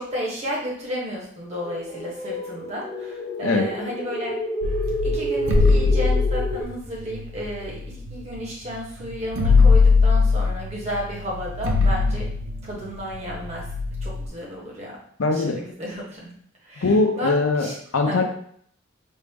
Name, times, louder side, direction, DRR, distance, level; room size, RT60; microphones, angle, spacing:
voice 1, 0.0-4.4 5.0-12.3 12.6-13.7 14.0-15.0 15.3-16.4 16.6-17.8 18.1-18.2, equal, 30° right, -3 dB, 1.0 m, -33 dB
sound 1, 1.6-6.6, equal, 20° left, 0.3 m, -29 dB
sound 2, 4.6-8.5 8.8-8.9 9.1-14.3, left 4 dB, 80° right, 0.5 m, -21 dB
voice 2, 15.2-15.6 16.8-17.7 17.9-18.2, left 3 dB, 75° left, 3 dB, 0.6 m, -21 dB
4.4 x 2.0 x 3.5 m, 0.63 s
head